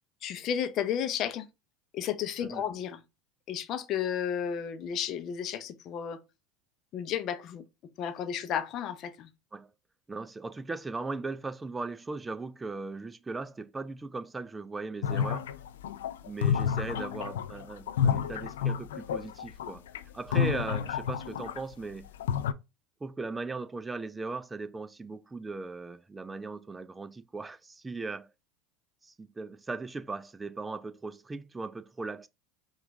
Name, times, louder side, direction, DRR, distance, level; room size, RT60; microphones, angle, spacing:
voice 1, 0.2-1.5 1.9-3.0 3.5-6.2 6.9-7.6 8.0-9.3, left 9 dB, 50° left, 0.6 m, -32 dB
voice 2, 10.1-15.5 16.2-19.8 20.1-22.1 23.0-28.3 29.0-32.3, right 3 dB, 15° right, 0.4 m, -38 dB
sound 1, 15.0-21.7 22.1-22.5, left 8 dB, 90° left, 0.3 m, -30 dB
4.9 x 2.4 x 3.5 m
hypercardioid pair, 95°, 0 cm